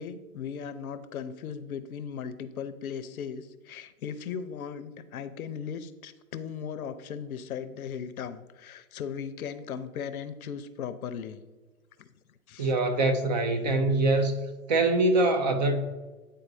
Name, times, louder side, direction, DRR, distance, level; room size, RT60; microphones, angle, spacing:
voice 1, 0.0-11.4 12.0-12.1 12.5-12.7, left 7 dB, 70° left, 12 dB, 0.7 m, -37 dB
voice 2, 12.6-14.3 14.7-15.8, right 2 dB, 30° right, 6 dB, 0.4 m, -24 dB
9.1 x 4.0 x 2.6 m, 1.2 s
hypercardioid pair, 125°, 45 cm